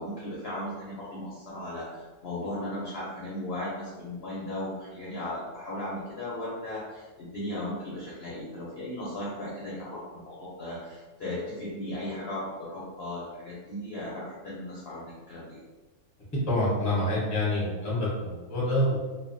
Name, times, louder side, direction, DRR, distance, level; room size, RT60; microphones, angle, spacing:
voice 1, 0.0-15.6, left 1 dB, 65° left, -7 dB, 0.6 m, -36 dB
voice 2, 16.5-19.0, left 1 dB, 20° left, -7 dB, 0.5 m, -27 dB
2.5 x 2.0 x 2.5 m, 1.3 s
omnidirectional pair, 1.6 m